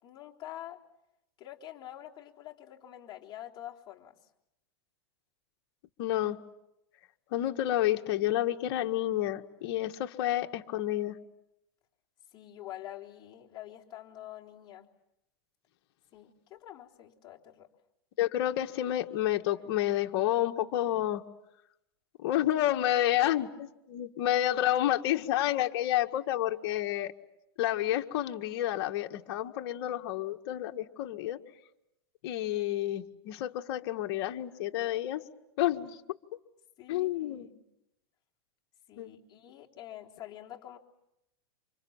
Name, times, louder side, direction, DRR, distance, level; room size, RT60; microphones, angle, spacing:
voice 1, 0.0-0.8 1.4-4.2 12.3-14.9 16.1-17.7 36.8-37.6 38.9-40.8, left 12 dB, 35° left, -1 dB, 3.7 m, -46 dB
voice 2, 6.0-6.4 7.3-11.2 18.2-21.2 22.2-27.1 27.6-31.4 32.2-35.2 35.6-36.0 36.9-37.5 39.0-39.1, left 13 dB, 60° left, 4 dB, 1.8 m, -29 dB
28.5 x 26.5 x 7.3 m, 0.85 s
hypercardioid pair, 125°, 13 cm